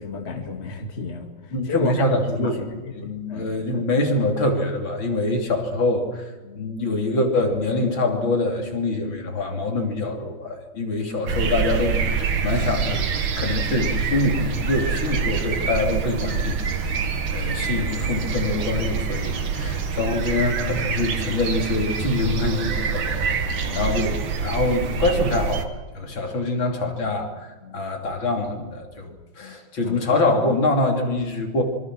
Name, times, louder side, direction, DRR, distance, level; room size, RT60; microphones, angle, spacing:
voice 1, 0.0-3.5 6.4-6.7 10.7-10.9 16.9-17.3 19.8-19.9 23.0-23.1 23.6-24.0 27.6-27.9 29.4-29.6 29.8-30.0, left 4 dB, 30° left, 3 dB, 2.2 m, -34 dB
voice 2, 1.5-2.7 2.9-13.1 13.4-16.9 17.3-31.6, left 2 dB, 60° left, 2 dB, 3.8 m, -25 dB
sound 1, 11.3-25.6, right 6 dB, 75° right, 2.5 m, -26 dB
25.5 x 24.5 x 6.2 m, 1.3 s
omnidirectional pair, 2.4 m